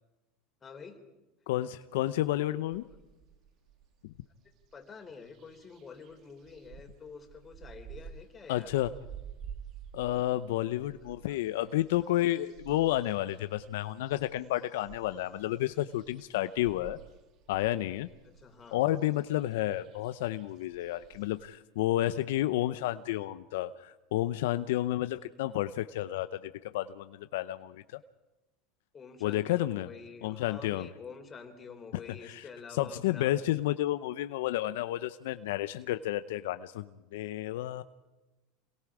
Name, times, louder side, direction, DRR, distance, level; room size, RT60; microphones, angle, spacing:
voice 1, 0.6-1.0 2.4-2.6 4.4-8.7 10.1-10.2 11.3-11.4 18.2-18.8 28.9-33.3, left 5 dB, 25° left, 5 dB, 3.7 m, -48 dB
voice 2, 1.5-2.8 4.0-4.1 8.5-8.9 9.9-17.0 17.5-18.1 18.7-27.8 29.2-29.9 30.2-30.9 32.2-32.4 32.7-37.8, left 14 dB, 80° left, 12 dB, 0.7 m, -31 dB
sound 1, 2.0-4.2 4.4-21.5, right 8 dB, 50° right, 2.3 m, -52 dB
27.5 x 22.0 x 4.9 m, 1.1 s
supercardioid pair, 110°, 0 cm